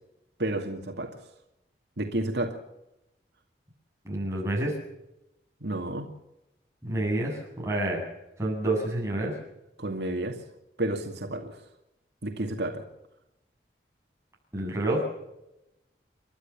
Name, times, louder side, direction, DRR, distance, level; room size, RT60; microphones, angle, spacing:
voice 1, 0.4-1.2 2.0-2.6 5.6-6.1 9.8-10.4 10.8-11.6 12.2-12.8, right 1 dB, 70° right, 3 dB, 2.4 m, -31 dB
voice 2, 4.0-4.7 6.8-8.1 8.4-9.4 14.5-15.0, right 1 dB, 15° right, -2 dB, 7.9 m, -28 dB
30.0 x 12.5 x 7.2 m, 0.91 s
head